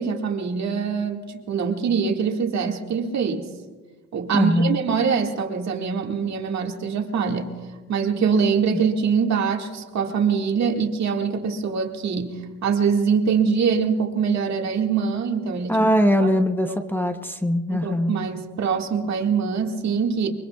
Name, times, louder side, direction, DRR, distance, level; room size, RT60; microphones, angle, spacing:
voice 1, 0.0-3.5 4.1-7.5 7.9-15.9 16.2-16.3 16.7-17.1 17.7-20.3, right 6 dB, 65° right, 2 dB, 2.0 m, -24 dB
voice 2, 4.3-4.8 8.7-8.8 15.7-18.1, equal, 5° left, 5 dB, 0.8 m, -21 dB
24.5 x 23.5 x 2.4 m, 1.4 s
cardioid pair, 90°, 30 cm